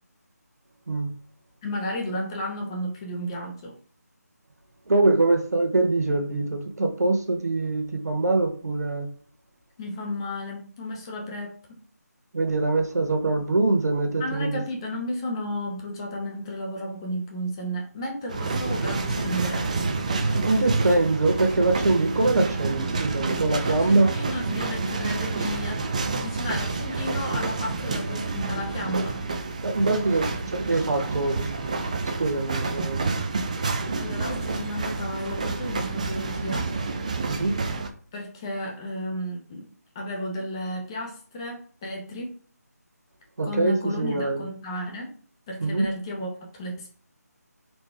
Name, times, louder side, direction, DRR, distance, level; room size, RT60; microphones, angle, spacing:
voice 1, 1.6-3.8 9.8-11.8 14.2-19.7 20.2-20.4 23.6-25.8 26.1-29.2 34.0-36.7 38.1-39.6 39.9-42.3 43.4-45.1 45.5-46.9, left 1 dB, 15° left, 0.8 m, -33 dB
voice 2, 4.9-9.1 12.3-14.6 20.4-24.1 29.6-31.6 32.2-33.1 37.3-37.6 43.4-44.4 45.6-45.9, right 2 dB, 65° right, 1.0 m, -23 dB
sound 1, 18.3-37.9, right 3 dB, 25° right, 0.4 m, -28 dB
4.1 x 3.3 x 3.4 m
figure-of-eight pair, 165°, 9 cm